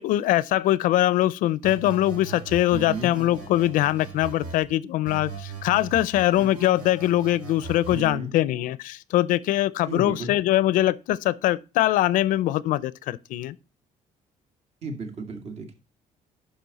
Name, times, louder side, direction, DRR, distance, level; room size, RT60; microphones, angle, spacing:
voice 1, 0.0-13.6, left 14 dB, 75° left, 0.5 m, -22 dB
sound 1, 1.6-4.6 5.1-8.1, right 5 dB, 75° right, 5.9 m, -39 dB
voice 2, 2.7-3.1 7.9-8.3 9.8-10.3 14.8-15.7, right 2 dB, 50° right, 2.0 m, -33 dB
10.5 x 5.8 x 4.0 m
cardioid pair, 165°, 14 cm